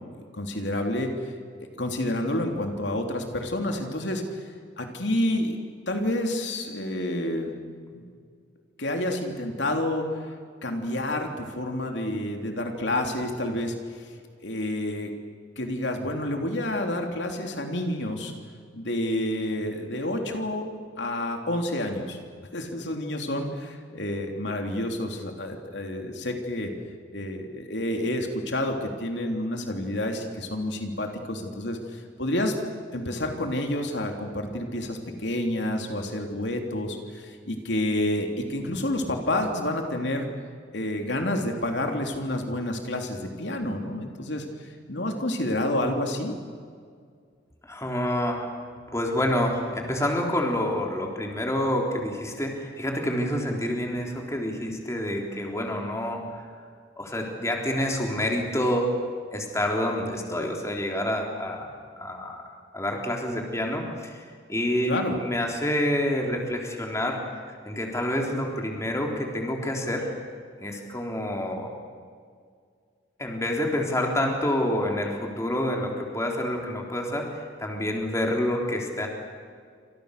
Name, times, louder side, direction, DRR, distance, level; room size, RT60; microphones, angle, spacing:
voice 1, 0.3-4.5 4.8-5.6 5.9-7.5 7.9-8.1 8.8-10.1 10.6-14.2 14.4-15.1 15.6-18.3 18.7-20.7 21.0-22.2 22.5-26.7 27.1-32.5 32.9-40.3 40.7-46.3 64.9-65.2, left 1 dB, 75° left, 3 dB, 3.2 m, -29 dB
voice 2, 47.6-48.5 48.9-56.5 57.0-58.9 59.3-61.7 62.0-62.4 62.7-67.2 67.6-70.0 70.6-71.7 73.2-79.1, left 1 dB, 15° left, 1 dB, 3.8 m, -28 dB
28.5 x 27.0 x 6.7 m, 2.1 s
head